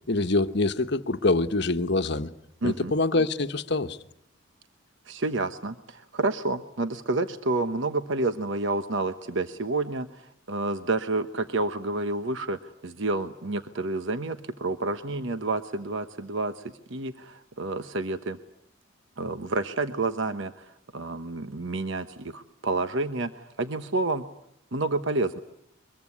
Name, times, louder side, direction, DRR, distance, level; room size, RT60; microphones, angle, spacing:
voice 1, 0.1-2.3 2.6-4.0, left 2 dB, 55° left, 1.2 m, -25 dB
voice 2, 2.6-2.9 5.1-18.4 19.2-24.2 24.7-25.4, right 2 dB, 65° right, 1.1 m, -29 dB
24.0 x 22.0 x 9.7 m
head